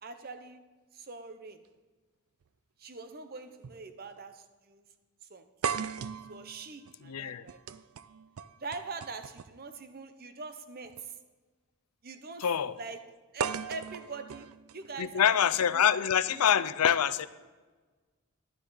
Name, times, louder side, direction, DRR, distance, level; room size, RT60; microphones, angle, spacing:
voice 1, 0.0-0.6 0.9-1.6 2.8-4.8 5.3-5.5 6.3-7.6 8.6-11.1 12.0-12.5 12.8-13.0 13.3-14.5 14.7-16.6, right 4 dB, 45° right, 9 dB, 0.8 m, -43 dB
sound 1, 2.4-2.5 3.6-3.8 4.2-4.3 5.6-9.7 10.8-11.0 13.4-15.4, right 7 dB, 75° right, 0.4 m, -38 dB
voice 2, 7.0-7.4 12.4-12.7 15.0-17.3, left 8 dB, 85° left, 16 dB, 0.5 m, -25 dB
12.5 x 11.5 x 4.0 m, 1.3 s
head